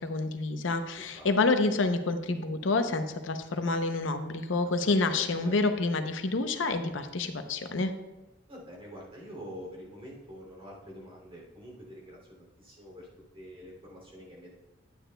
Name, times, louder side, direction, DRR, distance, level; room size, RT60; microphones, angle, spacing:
voice 1, 0.0-7.9, left 3 dB, 85° left, 8 dB, 0.7 m, -28 dB
voice 2, 0.9-1.3 4.6-5.5 8.5-13.1 13.3-14.5, equal, 30° right, -2 dB, 2.8 m, -46 dB
10.5 x 8.9 x 2.3 m, 1.1 s
head